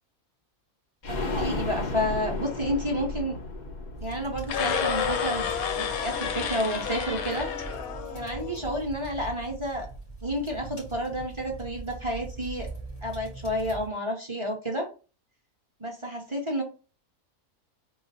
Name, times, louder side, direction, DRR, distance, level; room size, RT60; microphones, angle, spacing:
sound 1, 1.0-6.7 7.0-7.1 7.4-7.5, left 2 dB, 50° left, 0.5 m, -35 dB
voice 1, 1.1-3.4 4.0-7.5 8.1-9.9 10.2-12.7 13.0-14.9 15.8-16.6, equal, 35° right, 0 dB, 0.5 m, -30 dB
sound 2, 3.9-13.9, right 3 dB, 35° left, 2.5 m, -41 dB
sound 3, 4.4-8.6, left 7 dB, 80° left, 1.1 m, -30 dB
4.1 x 2.4 x 3.9 m, 0.35 s
omnidirectional pair, 1.5 m